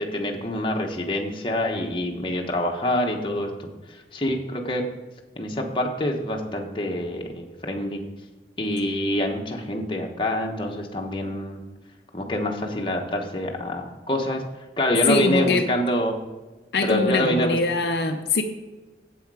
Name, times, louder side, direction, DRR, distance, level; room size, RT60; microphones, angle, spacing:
voice 1, 0.0-4.8 5.4-8.0 8.6-11.6 12.1-14.4 14.8-16.2 16.8-17.6, left 1 dB, 25° left, 1 dB, 1.1 m, -26 dB
voice 2, 15.1-15.7 16.7-18.4, left 2 dB, 65° left, 5 dB, 0.6 m, -22 dB
8.1 x 7.8 x 4.8 m, 1.2 s
head